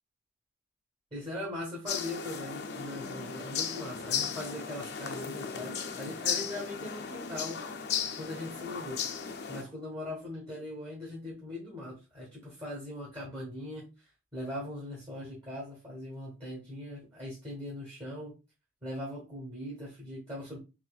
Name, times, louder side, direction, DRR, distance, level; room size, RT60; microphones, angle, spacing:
voice 1, 1.1-7.6 8.1-9.0 9.5-18.3 18.8-20.6, left 1 dB, 25° right, -5 dB, 1.2 m, -40 dB
sound 1, 1.9-9.6, left 7 dB, 55° left, 0.4 m, -36 dB
4.1 x 2.6 x 2.3 m, 0.29 s
head